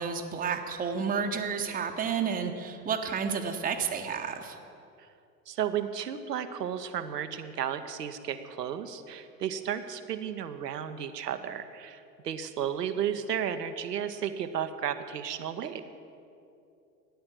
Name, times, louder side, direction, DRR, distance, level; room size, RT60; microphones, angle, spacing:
voice 1, 0.0-4.6, right 6 dB, 15° right, 4 dB, 1.0 m, -31 dB
voice 2, 5.5-15.8, right 9 dB, 75° right, 10 dB, 1.0 m, -33 dB
14.0 x 9.8 x 7.4 m, 2.6 s
figure-of-eight pair, 85°, 49 cm